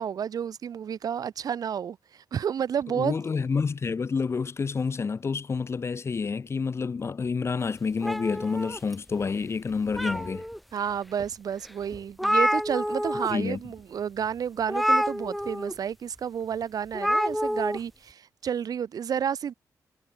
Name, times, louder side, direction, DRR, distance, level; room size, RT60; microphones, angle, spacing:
voice 1, 0.0-3.2 10.7-19.5, right 8 dB, 65° right, 7.2 m, -31 dB
voice 2, 3.0-10.4 13.3-13.6, left 5 dB, 40° left, 3.5 m, -28 dB
sound 1, 8.0-9.2 9.7-10.6 11.2-11.3 11.7-11.8 11.9-13.3 13.6-13.8 14.7-15.7 16.9-17.8, equal, ahead, 2.1 m, -27 dB
cardioid pair, 105°, 7 cm